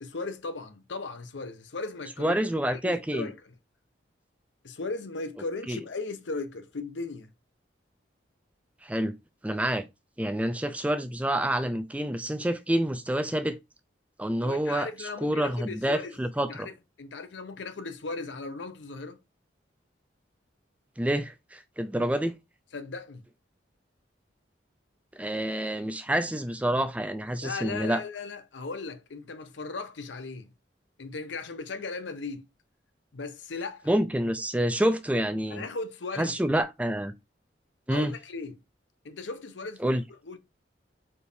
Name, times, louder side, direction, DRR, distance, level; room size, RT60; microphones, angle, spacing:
voice 1, 0.0-3.3 4.6-7.3 14.4-16.2 16.5-19.2 22.7-23.2 27.4-30.5 31.0-32.5 33.1-33.9 35.5-36.3 37.9-38.6 39.0-39.8 40.3-40.4, left 3 dB, 80° left, 0.7 m, -37 dB
voice 2, 2.2-3.3 5.7-5.8 8.8-9.1 9.4-9.8 10.2-13.6 14.2-16.7 21.0-22.3 25.2-28.0 33.9-35.6 36.2-37.1 37.9-38.1 39.8-40.0, right 1 dB, 5° right, 0.4 m, -28 dB
4.4 x 3.5 x 2.6 m
head